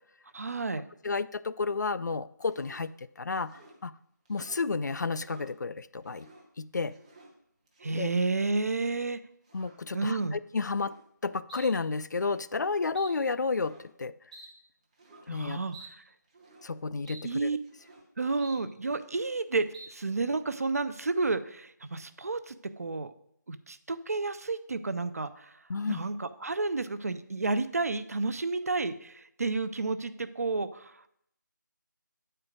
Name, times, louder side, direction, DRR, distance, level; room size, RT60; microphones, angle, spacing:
voice 1, 0.3-0.8 7.8-9.2 9.9-10.4 15.3-16.0 17.2-17.6 18.2-23.1 23.5-31.0, right 3 dB, 50° right, 12 dB, 0.5 m, -31 dB
voice 2, 1.0-2.9 3.2-3.9 4.3-6.3 6.6-7.0 8.0-8.1 9.5-11.0 11.2-14.1 15.3-15.6 16.6-17.5 25.7-26.0, left 4 dB, 65° left, 15 dB, 0.4 m, -31 dB
sound 1, 2.5-2.9 3.4-3.8 4.2-4.7 5.1-5.5 6.0-6.5 6.8-7.3 7.7-8.2 8.6-8.9 9.5-9.8 10.6-11.0 11.5-11.7 12.0-12.4 12.9-13.1 13.5-13.9 14.3-14.5 14.9-15.3 15.7-15.9 16.3-16.7 17.0-17.2 17.5-18.0 18.4-18.6 18.9-19.4 19.7-19.9, right 2 dB, 20° right, 0.8 m, -52 dB
8.9 x 4.4 x 5.0 m, 0.72 s
figure-of-eight pair, 175°, 10 cm